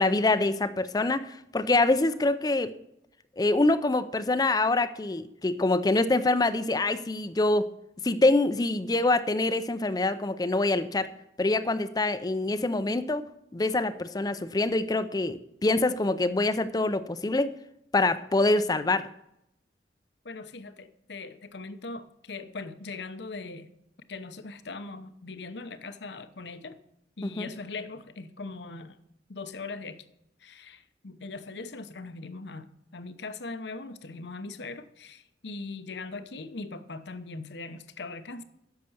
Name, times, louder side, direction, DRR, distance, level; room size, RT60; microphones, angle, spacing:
voice 1, 0.0-2.7 3.4-7.7 8.0-11.1 11.4-13.3 13.5-17.5 17.9-19.1 27.2-27.5, left 2 dB, 20° left, 12 dB, 0.4 m, -25 dB
voice 2, 20.2-23.7 24.1-26.8 27.2-29.0 29.3-30.0 30.4-32.7 32.9-38.4, left 3 dB, 70° left, 11 dB, 0.8 m, -40 dB
10.5 x 6.7 x 7.0 m, 0.81 s
head